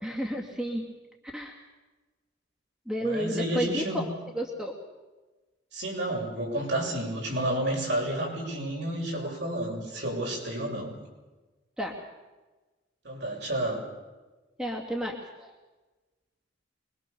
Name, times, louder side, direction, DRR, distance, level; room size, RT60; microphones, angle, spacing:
voice 1, 0.0-0.9 1.3-1.6 2.9-4.1 4.3-4.7 11.8-11.9 14.6-15.5, equal, 5° right, 0 dB, 2.5 m, -31 dB
voice 2, 3.0-4.0 5.7-10.9 13.0-13.8, right 1 dB, 60° right, -1 dB, 7.4 m, -30 dB
25.5 x 22.5 x 6.9 m, 1.2 s
head